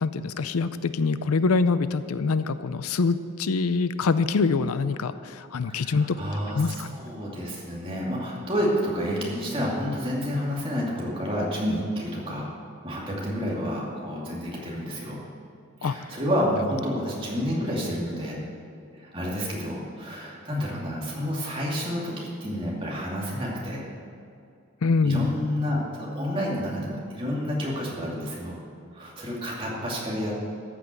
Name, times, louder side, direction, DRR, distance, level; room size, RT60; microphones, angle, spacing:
voice 1, 0.0-6.2 6.5-6.9 15.8-16.0 24.8-25.3, left 4 dB, 85° left, 13 dB, 0.5 m, -24 dB
voice 2, 5.7-12.5 12.8-15.2 15.8-18.4 19.0-23.8 25.0-28.6 28.9-30.3, equal, 25° right, -4 dB, 2.5 m, -29 dB
14.0 x 6.1 x 8.2 m, 2.4 s
head